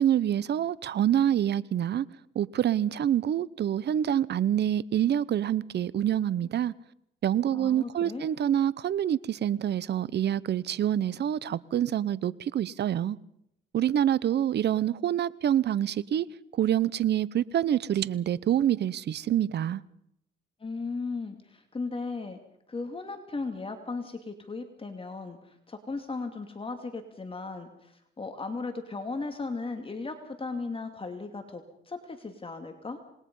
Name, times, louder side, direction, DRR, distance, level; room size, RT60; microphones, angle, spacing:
voice 1, 0.0-2.1 2.3-6.7 7.2-13.2 13.7-16.3 16.5-19.8, right 10 dB, 60° right, 0.8 m, -26 dB
voice 2, 7.5-8.3 20.6-22.4 22.7-33.0, left 3 dB, 25° left, 2.7 m, -36 dB
27.0 x 20.5 x 5.5 m
cardioid pair, 90°, 20 cm